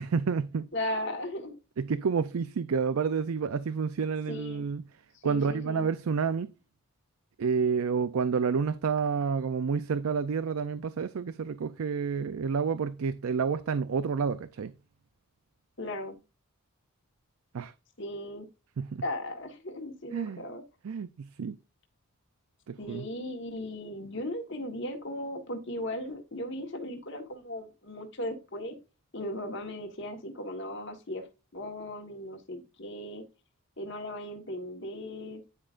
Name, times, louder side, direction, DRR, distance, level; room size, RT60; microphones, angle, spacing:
voice 1, 0.0-0.7 1.8-4.8 5.2-6.5 7.4-14.7 17.5-17.7 18.8-19.0 20.1-20.4 20.8-21.6 22.7-23.0, right 5 dB, 75° right, 0.4 m, -29 dB
voice 2, 0.7-1.6 4.3-4.6 5.2-5.9 15.8-16.2 18.0-18.5 19.0-20.6 22.8-28.8 29.1-31.3 31.5-33.2 33.8-35.4, left 1 dB, 55° left, 1.3 m, -37 dB
9.7 x 4.9 x 2.5 m
head